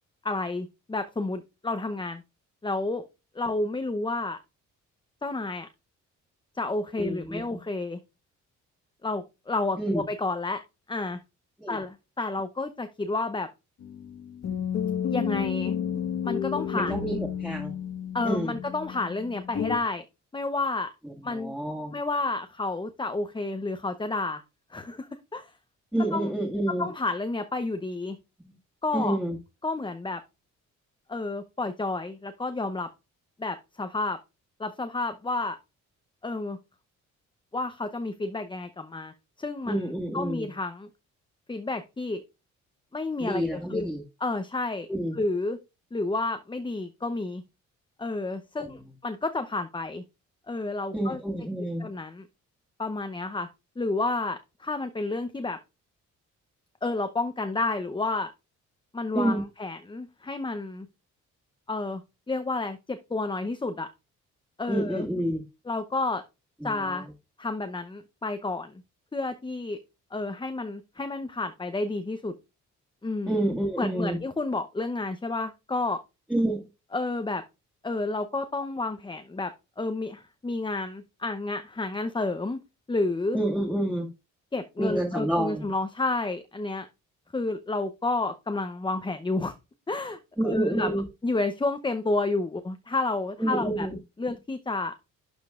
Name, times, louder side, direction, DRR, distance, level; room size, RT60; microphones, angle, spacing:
voice 1, 0.2-2.2 2.6-3.0 3.3-4.4 5.2-5.7 6.6-8.0 9.0-10.6 10.9-11.2 11.7-13.5 15.1-15.7 16.2-16.9 18.1-20.0 20.3-20.9 21.2-21.6 21.9-24.4 24.7-25.5 26.1-26.3 26.8-28.2 28.8-29.2 29.6-30.2 31.1-32.9 33.4-34.2 34.6-35.6 36.2-36.6 37.5-39.1 39.4-39.7 40.1-40.9 41.5-42.2 42.9-43.9 44.2-44.9 45.1-45.6 45.9-47.4 48.0-50.0 50.5-51.2 51.8-52.2 52.8-53.5 53.8-55.6 56.8-58.3 58.9-60.9 61.7-62.0 62.3-63.9 64.6-65.0 65.7-66.2 66.6-67.1 67.4-68.7 69.1-69.8 70.1-72.3 73.0-73.3 73.8-76.0 76.9-77.4 77.8-79.5 79.8-82.6 82.9-83.4 84.5-86.9 87.3-89.5 89.9-90.2 90.5-90.9 91.2-93.9 94.2-94.9, left 2 dB, 15° left, 0.8 m, -30 dB
voice 2, 7.0-7.6 9.8-10.0 11.6-11.8 16.7-17.7 18.2-18.6 21.0-21.9 25.9-26.9 28.4-28.6 28.9-29.4 39.7-40.5 43.2-44.0 44.9-45.2 48.5-48.9 50.9-51.9 59.1-59.4 64.7-65.4 66.6-67.1 73.3-74.2 76.3-76.7 83.3-84.1 84.8-85.7 90.4-91.0 93.4-94.0, right 1 dB, 5° right, 2.0 m, -29 dB
sound 1, 13.8-19.8, left 8 dB, 60° left, 1.5 m, -31 dB
11.5 x 5.2 x 2.5 m
cardioid pair, 90°, 30 cm